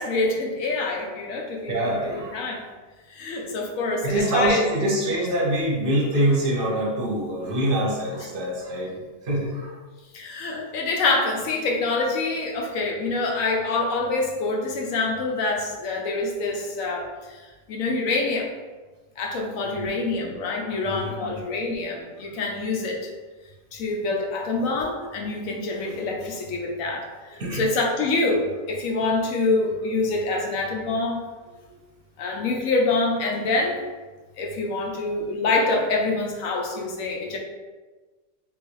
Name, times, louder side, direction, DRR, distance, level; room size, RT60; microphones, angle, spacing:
voice 1, 0.0-1.9 2.3-2.6 3.1-4.6 10.1-17.4 17.7-18.5 19.2-23.1 23.7-31.2 32.2-33.8 34.4-37.4, left 3 dB, 85° left, 0 dB, 1.1 m, -26 dB
voice 2, 1.7-2.4 4.0-8.9 9.2-9.7 19.7-19.9 20.9-21.4 25.7-26.0 27.4-27.6, right 1 dB, 50° right, -3 dB, 0.9 m, -25 dB
3.6 x 2.5 x 3.0 m, 1.3 s
omnidirectional pair, 1.4 m